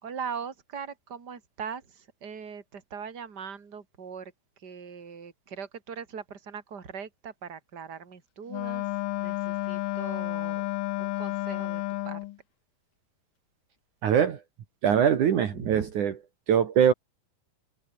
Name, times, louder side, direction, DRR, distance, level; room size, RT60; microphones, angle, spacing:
voice 1, 0.0-4.3 4.6-8.8 9.2-10.6 11.0-12.2 15.5-15.9, right 6 dB, 30° right, 3.4 m, -40 dB
Wind instrument woodwind instrument, 8.5-12.4, left 16 dB, 75° left, 2.5 m, -31 dB
voice 2, 14.0-14.4 14.8-16.2 16.5-16.9, right 8 dB, 60° right, 3.2 m, -22 dB
omnidirectional pair, 4.2 m